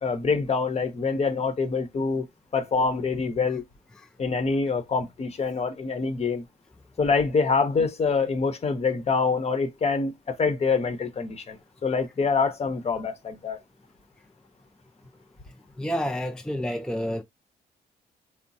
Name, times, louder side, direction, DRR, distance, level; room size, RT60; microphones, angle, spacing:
voice 1, 0.0-2.2 2.5-3.6 4.2-6.4 7.0-10.1 10.4-11.6 11.8-13.6, left 4 dB, 40° left, 0.9 m, -25 dB
voice 2, 15.8-17.2, equal, 5° left, 0.4 m, -29 dB
3.7 x 2.1 x 4.1 m
cardioid pair, 80°, 16 cm